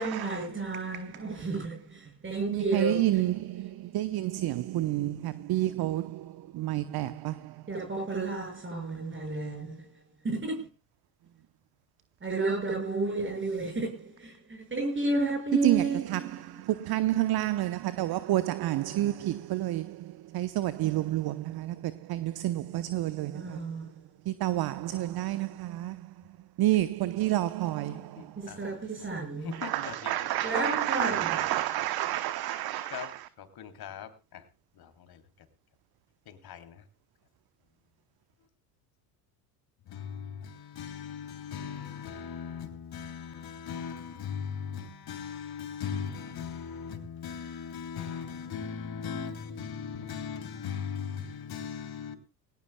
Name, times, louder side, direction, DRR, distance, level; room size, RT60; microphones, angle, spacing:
voice 1, 0.0-3.4 7.7-9.8 10.2-10.7 12.2-16.4 23.3-23.8 28.4-29.6 30.4-31.6, right 3 dB, 25° right, 6.2 m, -32 dB
voice 2, 2.5-6.2 6.5-7.3 15.6-16.4 16.8-19.9 20.3-21.7 22.1-23.6 24.3-26.0 26.6-28.0 29.6-33.2, right 15 dB, 50° right, 1.0 m, -29 dB
voice 3, 27.9-29.0 29.4-30.3 31.1-31.4 32.9-33.1 33.4-34.4 34.8-35.2 36.3-36.8 39.9-52.2, left 7 dB, 45° left, 3.4 m, -39 dB
19.5 x 18.0 x 2.3 m
hypercardioid pair, 75°, 49 cm